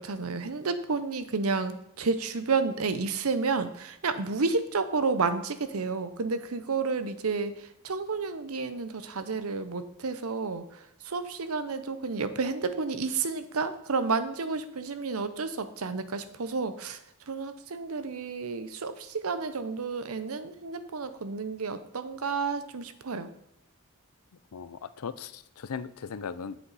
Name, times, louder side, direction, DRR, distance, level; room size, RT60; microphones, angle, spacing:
voice 1, 0.0-17.0 17.3-23.3, right 4 dB, 70° right, 11 dB, 0.8 m, -31 dB
voice 2, 24.5-26.6, left 6 dB, 85° left, 15 dB, 0.5 m, -38 dB
8.4 x 7.6 x 4.1 m, 0.81 s
head